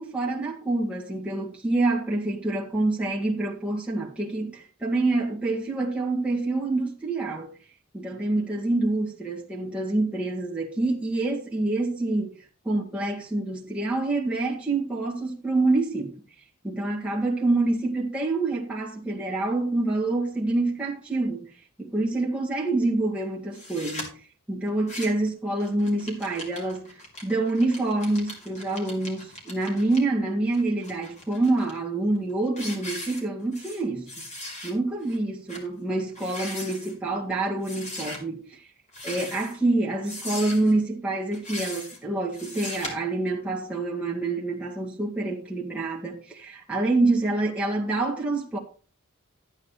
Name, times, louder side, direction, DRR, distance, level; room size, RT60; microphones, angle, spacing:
voice 1, 0.0-7.5 7.9-12.4 12.7-16.1 16.6-21.4 21.8-24.1 24.5-26.9 27.2-34.2 34.6-38.4 39.0-48.6, right 2 dB, 5° right, 1.9 m, -26 dB
sound 1, 23.5-24.1 24.7-25.3 25.6-30.0 30.5-31.7 32.2-32.3 32.6-33.8 34.1-34.7 35.1-35.2 35.5-35.7 36.1-36.9 37.6-38.2 38.9-39.6 40.0-40.7 41.3-42.0 42.3-42.9, left 1 dB, 35° left, 3.4 m, -38 dB
12.0 x 9.5 x 3.2 m
head